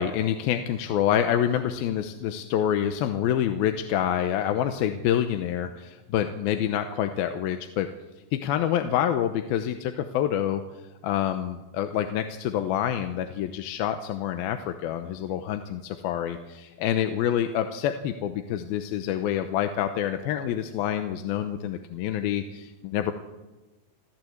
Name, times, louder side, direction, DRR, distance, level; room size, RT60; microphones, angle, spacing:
voice 1, 0.0-7.9 8.3-10.6 11.0-23.1, left 10 dB, 80° left, 7 dB, 2.7 m, -27 dB
27.0 x 14.0 x 7.9 m, 1.1 s
omnidirectional pair, 4.3 m